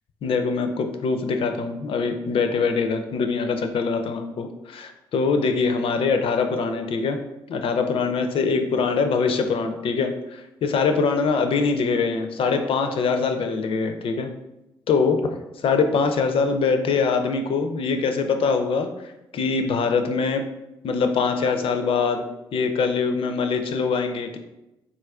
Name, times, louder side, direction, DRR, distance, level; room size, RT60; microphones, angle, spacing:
voice 1, 0.2-7.2 7.5-14.3 14.9-18.9 19.3-20.4 20.8-22.2 22.5-24.4, left 4 dB, 50° left, 7 dB, 0.4 m, -23 dB
3.9 x 2.4 x 2.3 m, 0.96 s
hypercardioid pair, 45°, 12 cm